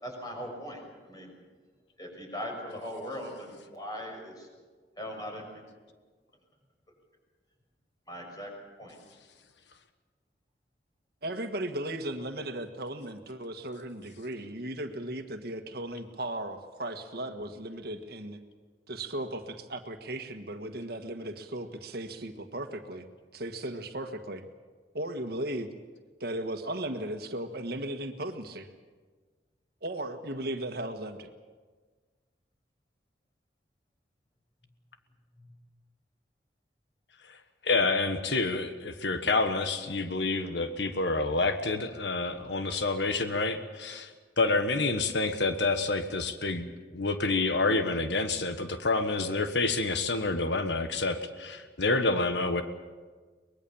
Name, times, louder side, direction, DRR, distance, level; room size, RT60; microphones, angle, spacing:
voice 1, 0.0-1.3 2.0-4.5 5.0-5.6 8.1-8.5 8.8-9.0 35.4-35.6, equal, 25° left, 1 dB, 6.2 m, -40 dB
voice 2, 11.2-18.4 18.9-23.0 23.3-24.4 24.9-25.7 26.2-28.7 29.8-31.3, right 1 dB, 60° right, 7 dB, 1.6 m, -36 dB
voice 3, 37.6-44.1 44.4-46.7 46.9-52.6, left 3 dB, 85° left, 8 dB, 1.4 m, -28 dB
23.5 x 20.5 x 7.2 m, 1.4 s
head